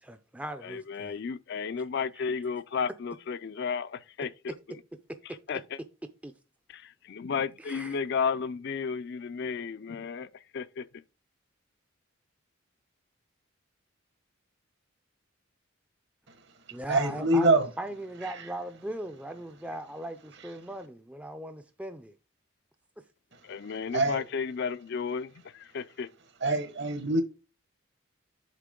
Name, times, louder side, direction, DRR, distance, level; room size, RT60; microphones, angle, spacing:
voice 1, 0.0-1.2 2.2-2.3 6.2-6.3 7.6-8.0 16.7-17.5 17.8-22.2, right 1 dB, 5° right, 0.4 m, -39 dB
voice 2, 0.6-4.5 5.2-5.8 6.7-10.9 23.4-26.1, left 6 dB, 55° left, 0.4 m, -33 dB
voice 3, 16.7-17.7 18.2-18.4 23.3-24.2 26.4-27.2, right 2 dB, 55° right, 1.4 m, -26 dB
8.3 x 5.1 x 3.7 m
head